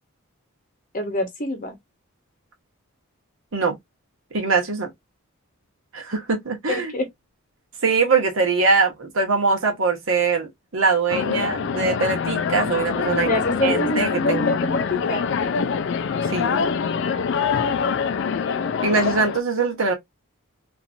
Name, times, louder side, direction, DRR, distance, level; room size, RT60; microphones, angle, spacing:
voice 1, 0.9-1.8 6.7-7.1 13.1-15.3, left 1 dB, 35° left, 0.8 m, -25 dB
voice 2, 4.3-4.9 5.9-6.9 7.8-13.3 13.6-14.4 16.2-16.7 18.8-19.9, right 4 dB, 65° right, 1.0 m, -22 dB
sound 1, 11.1-19.4, left 6 dB, 55° left, 0.3 m, -24 dB
2.8 x 2.6 x 2.5 m
head